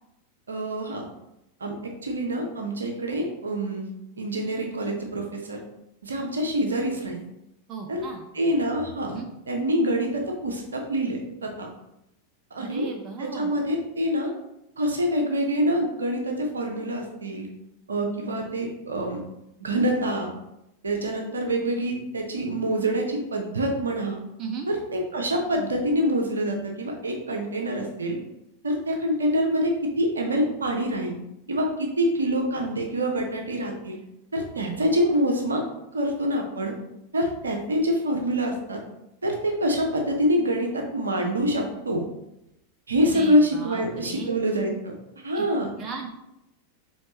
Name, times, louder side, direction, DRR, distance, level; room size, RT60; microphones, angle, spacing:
voice 1, 0.5-1.1 1.6-1.7 2.0-3.9 4.2-5.6 6.0-7.2 7.9-8.0 8.3-9.2 9.5-11.7 12.5-12.9 13.2-14.3 14.8-17.5 17.9-19.2 19.6-20.3 20.8-24.2 24.7-28.2 28.6-31.1 31.5-34.0 34.3-35.6 35.9-36.7 37.1-38.8 39.2-42.0 42.9-44.9 45.2-45.7, equal, 75° right, 2 dB, 0.7 m, -26 dB
voice 2, 7.7-8.2 9.1-9.3 12.6-13.5 24.4-24.7 43.0-44.4 45.3-45.5 45.8-46.1, right 5 dB, 30° right, 3 dB, 0.5 m, -36 dB
4.5 x 3.1 x 2.9 m, 0.87 s
figure-of-eight pair, 90°, 0 cm